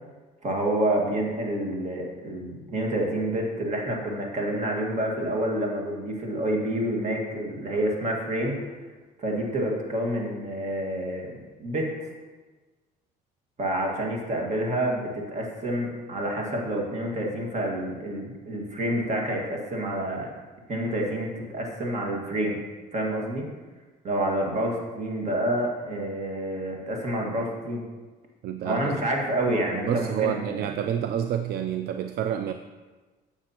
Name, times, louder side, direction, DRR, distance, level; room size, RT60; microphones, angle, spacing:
voice 1, 0.4-8.6 9.2-12.1 13.6-20.3 20.7-22.6 22.9-23.5 24.0-27.8 28.6-30.7, right 1 dB, 45° right, 0 dB, 1.8 m, -28 dB
voice 2, 28.4-29.0 29.8-32.5, right 9 dB, 70° right, 9 dB, 0.4 m, -28 dB
9.5 x 7.0 x 2.9 m, 1.3 s
cardioid pair, 110°, 17 cm